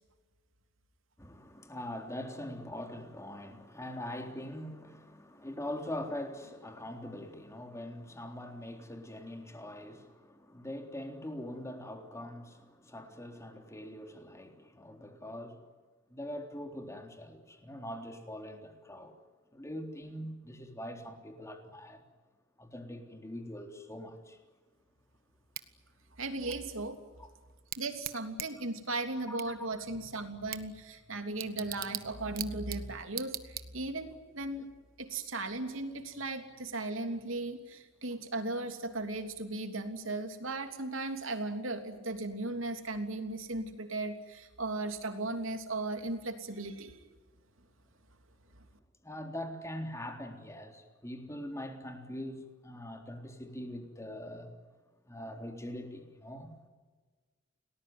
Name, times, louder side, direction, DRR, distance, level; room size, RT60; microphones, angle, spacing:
voice 1, 1.2-15.7 16.1-19.1 19.5-22.0 22.6-24.4 27.2-27.3 29.3-29.7 49.0-54.5 55.1-56.7, left 1 dB, 15° left, 3.6 m, -43 dB
Bicycle / Tick, 25.5-34.1, right 12 dB, 50° right, 1.4 m, -44 dB
voice 2, 26.2-27.0 27.8-34.7 35.0-47.0, right 2 dB, 80° right, 3.1 m, -37 dB
29.5 x 19.0 x 9.6 m
head